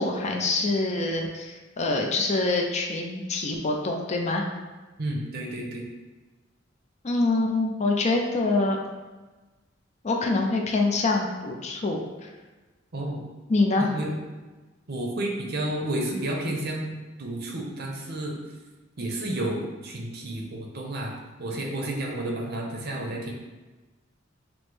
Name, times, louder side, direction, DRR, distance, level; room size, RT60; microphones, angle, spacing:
voice 1, 0.0-4.4 7.0-8.8 10.0-12.0 13.5-13.9, left 2 dB, 35° left, 2 dB, 0.4 m, -25 dB
voice 2, 5.0-5.9 12.9-13.2 13.8-14.2 14.9-16.9 17.2-18.4 19.0-21.1 21.4-23.3, right 1 dB, 55° right, 0 dB, 0.7 m, -31 dB
5.9 x 2.0 x 3.2 m, 1.2 s
head